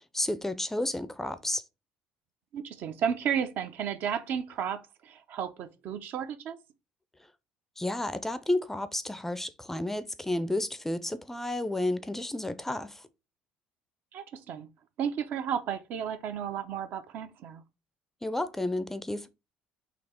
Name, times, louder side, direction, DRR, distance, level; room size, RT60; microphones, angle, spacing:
voice 1, 0.0-1.6 7.8-13.0 18.2-19.3, left 1 dB, 10° left, 0.4 m, -31 dB
voice 2, 2.5-6.6 14.1-14.7 15.0-17.6, right 8 dB, 65° right, 0.6 m, -33 dB
4.2 x 2.8 x 4.4 m
supercardioid pair, 90°, 3 cm